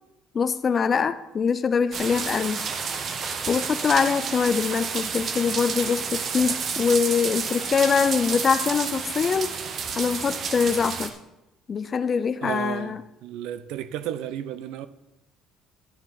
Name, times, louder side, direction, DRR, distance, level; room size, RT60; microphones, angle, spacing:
voice 1, 0.3-2.7 3.5-9.5 10.0-11.2 11.7-13.0, left 6 dB, 25° left, 14 dB, 0.4 m, -23 dB
sound 1, 1.9-11.1, right 6 dB, 30° right, 0.8 m, -30 dB
voice 2, 12.4-14.9, right 10 dB, 75° right, 13 dB, 0.7 m, -33 dB
11.5 x 10.0 x 4.0 m, 0.95 s
cardioid pair, 180°, 0 cm